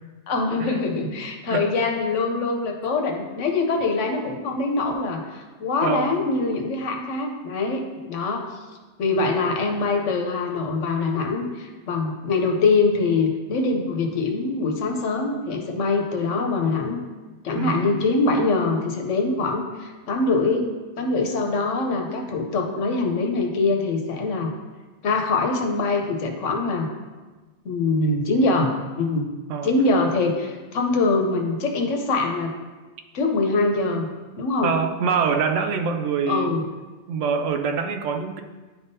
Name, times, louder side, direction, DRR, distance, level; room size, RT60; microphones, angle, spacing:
voice 1, 0.3-8.5 9.0-17.0 17.4-20.7 21.0-24.5 25.0-26.9 27.6-29.3 29.6-32.5 33.1-34.1 34.4-34.7 36.3-36.6, left 3 dB, 85° left, 3 dB, 1.1 m, -23 dB
voice 2, 5.8-6.1 17.5-17.9 29.5-29.7 34.6-36.5 37.1-38.4, right 6 dB, 80° right, 7 dB, 0.9 m, -24 dB
10.5 x 3.5 x 2.7 m, 1.3 s
omnidirectional pair, 1.2 m